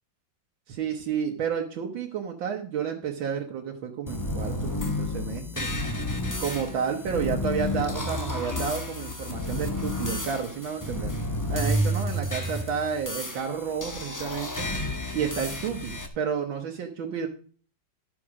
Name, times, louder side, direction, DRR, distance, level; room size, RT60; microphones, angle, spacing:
voice 1, 0.7-5.7 6.4-11.1 11.5-17.3, right 7 dB, 80° right, 2 dB, 1.8 m, -31 dB
sound 1, 4.1-16.1, left 1 dB, 25° left, 0.4 m, -31 dB
11.5 x 6.3 x 4.9 m, 0.42 s
omnidirectional pair, 2.1 m